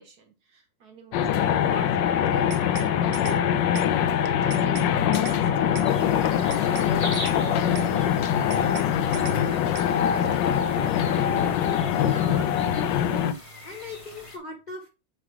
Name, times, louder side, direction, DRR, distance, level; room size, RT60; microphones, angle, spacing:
voice 1, 0.0-3.6 4.0-10.0, right 4 dB, 50° right, 1.7 m, -43 dB
sound 1, 1.1-13.3, left 9 dB, 75° left, 1.1 m, -23 dB
sound 2, 2.3-2.9 3.1-3.4 3.7-3.9 4.2-4.9 5.1-5.4 5.7-5.9 6.2-6.9 7.1-7.4 7.7-7.9 8.2-8.9 9.1-9.4 9.7-9.9, right 9 dB, 70° right, 0.9 m, -39 dB
sound 3, 5.8-14.4, left 1 dB, 25° left, 0.8 m, -41 dB
voice 2, 11.9-13.4 13.6-14.9, left 2 dB, 55° left, 0.4 m, -38 dB
7.4 x 3.3 x 4.7 m
omnidirectional pair, 2.3 m